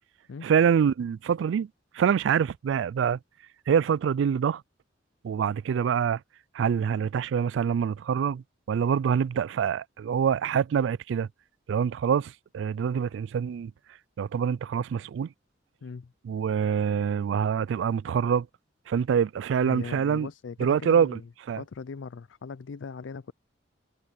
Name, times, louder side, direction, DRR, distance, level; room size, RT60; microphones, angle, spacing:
voice 1, 0.4-1.7 1.9-3.2 3.7-4.6 5.2-6.2 6.5-11.3 11.7-13.7 14.2-15.3 16.2-18.5 18.9-20.3 20.6-21.2 21.5-21.6, right 7 dB, 75° right, 0.3 m, -25 dB
voice 2, 15.8-16.1 19.6-21.3 21.6-23.3, left 5 dB, 80° left, 0.4 m, -39 dB
head